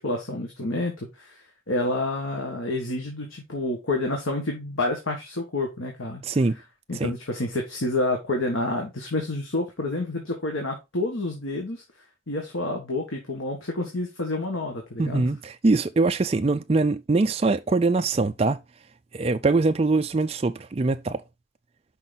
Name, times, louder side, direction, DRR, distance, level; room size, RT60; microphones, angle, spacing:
voice 1, 0.0-1.4 1.7-6.2 6.9-11.8 12.3-15.3, left 2 dB, 90° left, 1.7 m, -29 dB
voice 2, 6.2-6.6 7.0-7.1 15.0-18.6 19.1-21.2, right 3 dB, 30° right, 0.4 m, -23 dB
5.9 x 5.3 x 4.0 m
head